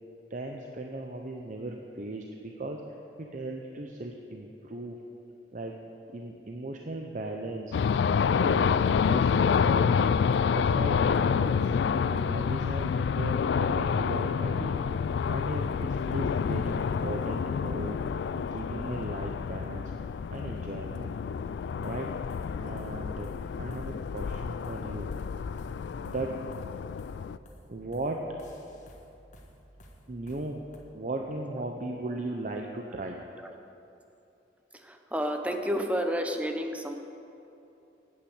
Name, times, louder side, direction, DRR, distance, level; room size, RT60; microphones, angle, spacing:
voice 1, 0.3-2.8 3.2-5.0 5.5-5.8 6.1-7.8 8.3-8.8 9.1-9.9 10.5-11.7 12.1-14.8 15.3-18.0 18.4-19.9 20.3-21.2 21.8-22.1 22.6-25.1 26.0-26.4 27.7-28.2 30.1-30.6 30.9-33.2, right 2 dB, 45° right, 2 dB, 0.7 m, -37 dB
sound 1, 7.7-27.4, left 6 dB, 75° left, 0.3 m, -28 dB
sound 2, 21.8-30.8, equal, 45° left, 1.5 m, -54 dB
voice 2, 34.8-36.9, equal, 10° right, 4 dB, 0.8 m, -30 dB
10.0 x 8.8 x 7.9 m, 2.8 s
head